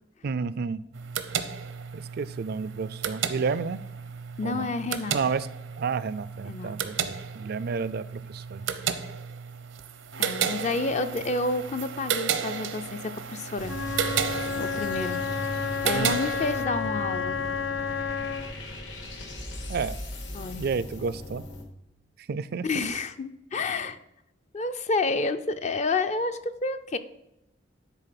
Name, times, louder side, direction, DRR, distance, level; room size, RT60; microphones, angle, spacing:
voice 1, 0.2-0.8 1.9-3.8 4.4-4.7 5.1-5.5 5.8-8.6 15.9-16.2 19.7-20.0 20.6-21.4 22.3-22.9, right 5 dB, 55° right, 16 dB, 0.4 m, -31 dB
sound 1, 0.9-16.7, right 8 dB, 85° right, 0.7 m, -33 dB
voice 2, 4.4-5.2 6.5-6.8 10.2-13.8 14.6-15.2 15.8-17.4 20.3-20.6 22.6-24.0 24.5-27.0, left 3 dB, 35° left, 10 dB, 0.5 m, -29 dB
Wind instrument woodwind instrument, 13.6-18.6, left 6 dB, 85° left, 0.7 m, -31 dB
sound 2, 13.6-21.6, equal, 70° left, 1.8 m, -38 dB
9.9 x 4.2 x 5.8 m, 0.86 s
head